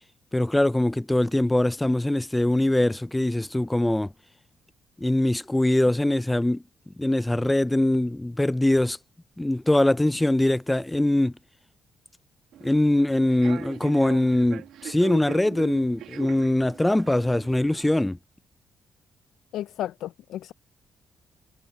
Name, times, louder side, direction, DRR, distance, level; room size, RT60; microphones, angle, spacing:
voice 1, 0.3-4.1 5.0-9.0 9.4-11.3 12.6-18.2, left 1 dB, 10° left, 0.4 m, -22 dB
Human voice / Subway metro underground, 12.5-18.0, right 11 dB, 80° right, 1.8 m, -40 dB
voice 2, 19.5-20.5, left 12 dB, 80° left, 0.4 m, -33 dB
cardioid pair, 90°, 0 cm